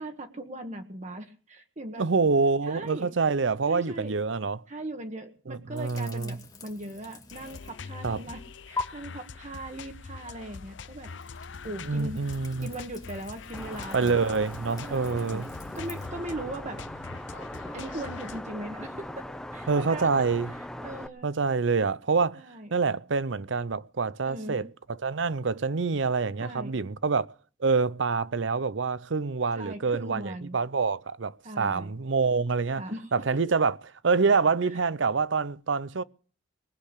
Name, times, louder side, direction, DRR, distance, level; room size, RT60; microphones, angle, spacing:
voice 1, 0.0-2.1 2.7-3.1 3.7-4.1 4.7-8.4 8.7-11.1 11.6-12.2 12.6-14.2 14.9-15.4 15.7-16.8 17.7-19.2 19.5-20.1 20.5-21.3 22.3-22.7 24.3-24.6 26.4-26.7 29.5-30.6 31.4-31.9 32.8-33.1 34.3-34.8, right 1 dB, 40° right, 1.4 m, -39 dB
voice 2, 2.0-4.6 5.5-6.4 8.0-8.2 11.9-12.7 13.9-15.5 19.7-20.5 21.2-22.4 22.7-24.7 25.0-27.3 27.6-32.9 33.1-33.8 34.0-36.0, right 4 dB, 80° right, 0.7 m, -26 dB
sound 1, 5.8-7.9 8.2-8.8 11.0-16.1, left 3 dB, 20° left, 1.9 m, -43 dB
sound 2, 7.3-18.4, left 4 dB, 75° left, 0.7 m, -43 dB
sound 3, 13.5-21.1, left 1 dB, 5° left, 1.0 m, -40 dB
20.0 x 6.7 x 9.9 m
head